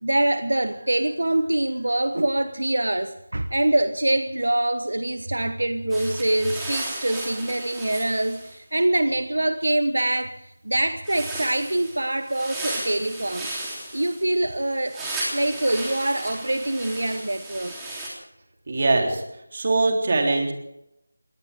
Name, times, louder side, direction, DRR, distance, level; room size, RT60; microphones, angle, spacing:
voice 1, 0.0-13.5 13.9-17.7, right 1 dB, 80° right, 10 dB, 1.1 m, -24 dB
sound 1, 5.9-8.5 11.0-18.1, right 2 dB, 5° right, 3.4 m, -35 dB
voice 2, 18.7-19.2 19.5-20.5, right 2 dB, 40° right, 2 dB, 3.5 m, -21 dB
21.5 x 18.0 x 3.7 m, 0.82 s
figure-of-eight pair, 170°, 0 cm